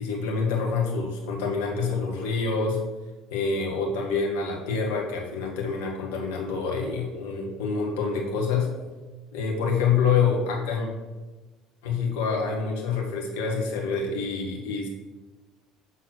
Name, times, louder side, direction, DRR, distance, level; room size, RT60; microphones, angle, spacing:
voice 1, 0.0-2.8 3.3-8.7 9.3-10.9 11.8-14.9, left 5 dB, 70° left, 0 dB, 1.5 m, -26 dB
6.3 x 3.9 x 6.2 m, 1.2 s
hypercardioid pair, 65°, 0 cm